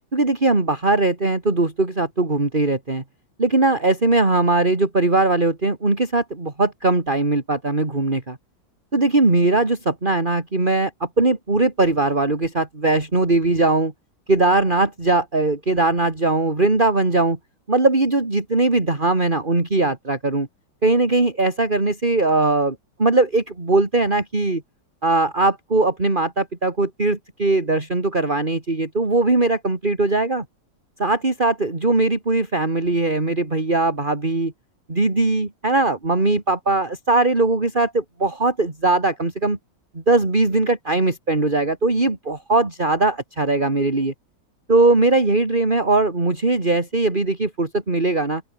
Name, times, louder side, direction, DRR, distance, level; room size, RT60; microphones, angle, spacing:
voice 1, 0.1-3.0 3.4-8.4 8.9-13.9 14.3-17.4 17.7-20.5 20.8-24.6 25.0-30.4 31.0-34.5 34.9-39.6 39.9-44.1 44.7-48.4, right 2 dB, 25° right, 3.2 m, -20 dB
open air
omnidirectional pair, 2.0 m